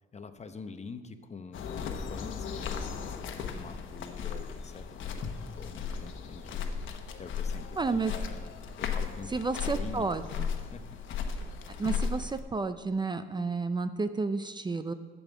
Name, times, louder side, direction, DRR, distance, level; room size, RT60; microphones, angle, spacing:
voice 1, 0.1-8.5 8.8-11.0, left 4 dB, 35° left, 9 dB, 0.9 m, -46 dB
sound 1, 1.5-12.4, left 6 dB, 75° left, 1.1 m, -36 dB
voice 2, 7.8-8.1 9.3-10.5 11.8-14.9, right 4 dB, 20° right, 10 dB, 0.5 m, -31 dB
8.8 x 7.1 x 8.4 m, 1.5 s
cardioid pair, 90°, 20 cm